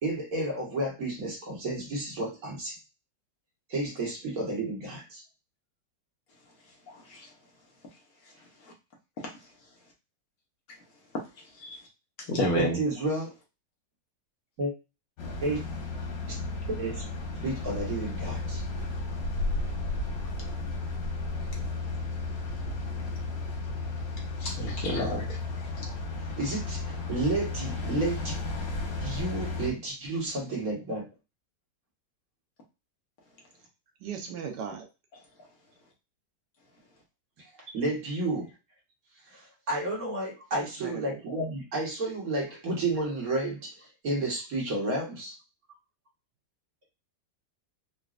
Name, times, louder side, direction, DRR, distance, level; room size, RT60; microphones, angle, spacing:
voice 1, 0.0-2.8 3.7-5.2 12.5-13.4 14.6-14.7 15.4-15.6 16.3-16.4 16.7-17.0 17.4-18.6 26.2-28.4 29.0-31.1 37.7-38.5 39.3-45.4, right 2 dB, 55° right, 1.6 m, -31 dB
voice 2, 6.9-7.3 9.2-9.3 11.6-11.8 12.3-12.8 24.4-25.4 25.8-25.9, equal, 60° left, 1.3 m, -30 dB
sound 1, 15.2-29.7, left 3 dB, 85° left, 1.7 m, -33 dB
voice 3, 34.0-34.9 40.6-41.2, right 7 dB, 75° right, 1.3 m, -37 dB
4.0 x 2.3 x 2.4 m
omnidirectional pair, 1.9 m